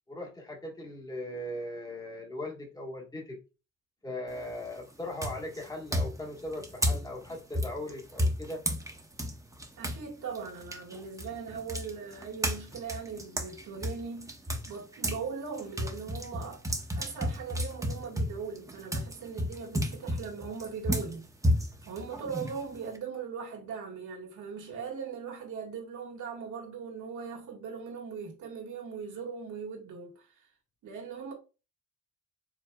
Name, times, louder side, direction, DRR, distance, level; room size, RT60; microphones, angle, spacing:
voice 1, 0.1-3.4 4.0-8.6, left 1 dB, 10° left, 1.4 m, -39 dB
sound 1, 4.3-4.7 5.2-10.0 10.3-15.2 15.6-23.0, equal, 10° right, 0.9 m, -32 dB
voice 2, 9.8-14.3 14.7-16.6 17.0-21.3 21.9-30.3 30.8-31.3, right 6 dB, 80° right, 1.7 m, -39 dB
4.7 x 3.4 x 2.3 m
cardioid pair, 90°, 30 cm